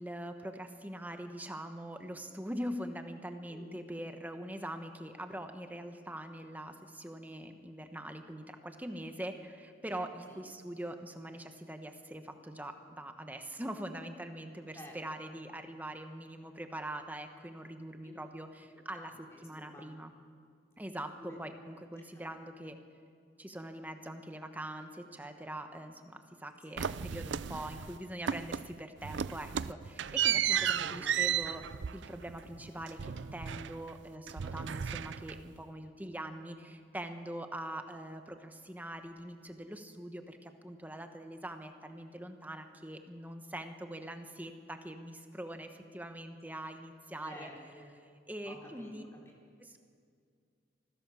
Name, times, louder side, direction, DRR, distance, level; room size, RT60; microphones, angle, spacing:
voice 1, 0.0-19.1 19.4-20.1 20.8-22.8 23.4-31.6 31.9-47.5 48.3-49.0 49.6-49.8, right 1 dB, 10° right, 6 dB, 1.1 m, -43 dB
voice 2, 14.7-15.2 18.0-18.1 18.9-19.9 21.2-21.4 26.7-26.8 30.5-31.5 47.2-47.9 48.5-49.2, equal, 15° left, -2 dB, 4.1 m, -51 dB
sound 1, 26.8-28.0 28.3-28.7 29.0-34.0 34.3-35.6, right 9 dB, 70° right, 0.5 m, -34 dB
25.5 x 16.0 x 7.0 m, 2.2 s
head